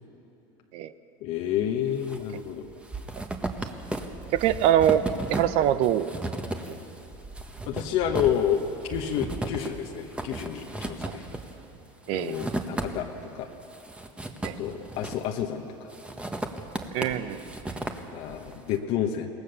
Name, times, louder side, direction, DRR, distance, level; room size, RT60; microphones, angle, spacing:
voice 1, 1.2-2.7 7.7-11.3 12.1-13.1 13.3-13.5 14.6-15.9 18.1-19.3, left 9 dB, 65° left, 3 dB, 1.3 m, -29 dB
sound 1, 1.6-2.2 2.5-13.3 13.6-15.4 15.9-18.6, right 2 dB, 10° right, 1.5 m, -35 dB
voice 2, 4.3-5.0 5.3-6.1 11.0-11.2 12.1-12.4 14.4-14.5 16.9-17.4, right 11 dB, 65° right, 13 dB, 0.8 m, -23 dB
23.0 x 18.0 x 6.9 m, 3.0 s
supercardioid pair, 115°, 12 cm